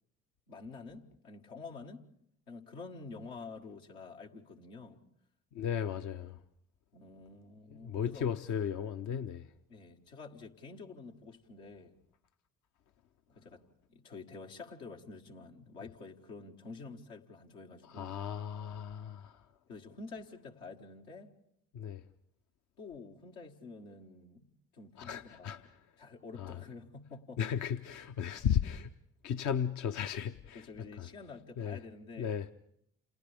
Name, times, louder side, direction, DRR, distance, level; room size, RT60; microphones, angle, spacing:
voice 1, 0.5-2.1 2.5-5.0 6.9-8.2 9.7-11.9 13.3-13.6 13.9-18.2 19.7-21.3 22.8-25.6 26.0-27.4 30.5-32.3, left 4 dB, 85° left, 1.8 m, -49 dB
voice 2, 5.5-6.4 7.7-9.4 17.9-19.4 21.7-22.0 25.0-25.6 26.4-26.6 27.4-28.9 29.2-30.7 31.0-31.1 31.6-31.8 32.2-32.5, left 8 dB, 60° left, 0.7 m, -35 dB
29.5 x 28.0 x 3.5 m
hypercardioid pair, 55°, 33 cm